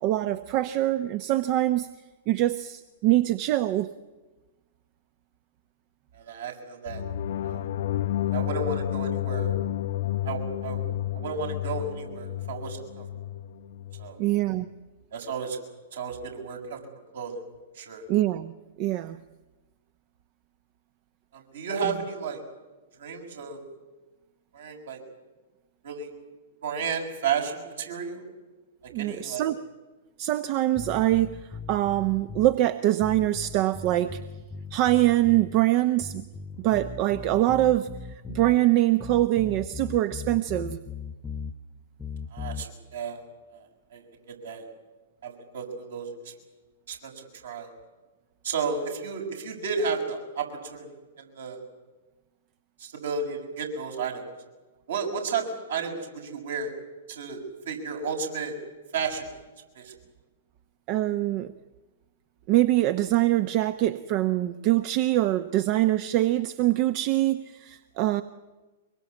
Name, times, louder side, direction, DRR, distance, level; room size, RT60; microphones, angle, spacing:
voice 1, 0.0-1.9 2.3-3.9 14.2-14.7 18.1-18.5 18.8-19.2 28.9-29.6 30.2-31.4 31.7-34.2 34.7-36.2 36.6-37.9 38.3-40.8 60.9-61.5 62.5-68.2, right 15 dB, 40° right, 12 dB, 0.9 m, -24 dB
voice 2, 6.1-7.0 7.4-7.6 8.3-9.5 10.2-10.8 11.1-13.0 14.0-14.2 15.1-15.6 15.9-16.8 17.1-17.4 17.7-18.1 21.3-22.4 23.0-23.6 24.5-25.0 25.8-26.1 26.6-28.2 29.0-29.5 42.3-43.2 43.5-43.6 43.9-44.7 45.2-46.1 46.9-47.7 48.4-50.9 51.2-51.6 52.8-54.2 54.9-55.4 55.7-56.7 57.1-58.5 58.9-59.3 59.7-59.9, right 5 dB, 70° right, 2 dB, 6.7 m, -32 dB
sound 1, 6.9-14.1, left 12 dB, 60° left, 0.8 m, -30 dB
sound 2, 30.7-32.6 33.0-35.6 36.0-38.6 39.0-41.6 42.0-42.7, left 5 dB, 15° left, 1.1 m, -38 dB
24.0 x 22.5 x 8.5 m, 1.2 s
figure-of-eight pair, 105°, 0 cm